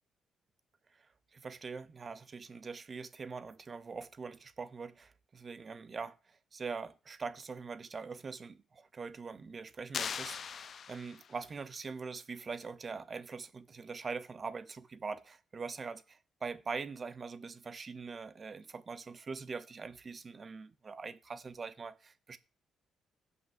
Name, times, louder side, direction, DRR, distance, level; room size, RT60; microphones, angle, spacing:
voice 1, 1.3-22.4, right 4 dB, 35° right, 0.7 m, -43 dB
sound 1, 9.9-11.5, left 7 dB, 55° left, 0.4 m, -40 dB
16.5 x 5.6 x 2.5 m
cardioid pair, 90°, 0 cm